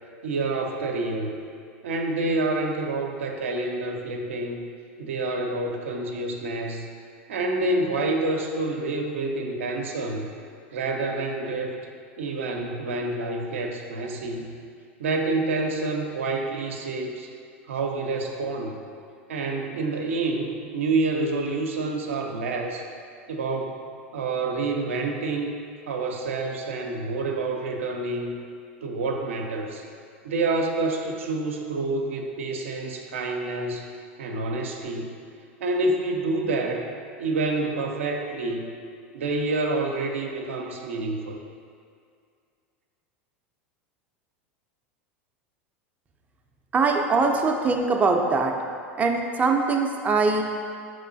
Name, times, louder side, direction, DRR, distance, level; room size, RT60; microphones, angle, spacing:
voice 1, 0.2-1.4 1.8-4.6 5.0-6.9 7.3-10.3 10.7-11.8 12.2-14.5 15.0-17.3 17.7-18.8 19.3-22.8 23.3-23.8 24.1-25.5 25.9-28.3 28.8-29.8 30.2-33.9 34.2-35.1 35.6-36.9 37.2-38.7 39.1-41.4, right 2 dB, 80° right, 2 dB, 0.5 m, -28 dB
voice 2, 46.7-48.5 49.0-50.4, right 4 dB, 20° right, 2 dB, 0.4 m, -22 dB
5.3 x 3.1 x 2.6 m, 2.3 s
hypercardioid pair, 90°, 7 cm